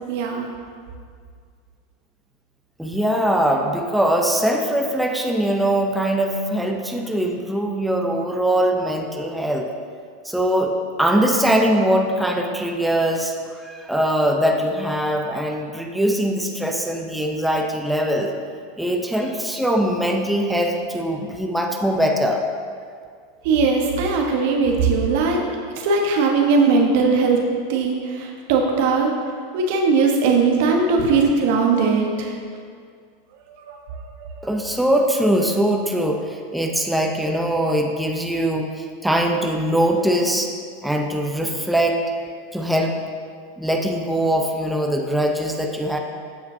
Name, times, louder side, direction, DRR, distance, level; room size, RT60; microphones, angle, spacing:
voice 1, 0.1-0.5 23.4-25.4 25.8-27.4 27.7-29.1 29.5-32.3 33.7-33.8 34.2-34.3, right 4 dB, 65° right, 1 dB, 1.1 m, -19 dB
voice 2, 2.8-9.7 10.2-18.3 18.8-22.4 34.4-40.5 40.8-42.0 42.5-43.0 43.6-46.0, right 1 dB, 5° right, 1 dB, 0.8 m, -22 dB
14.5 x 5.0 x 2.8 m, 2.1 s
hypercardioid pair, 95°, 0 cm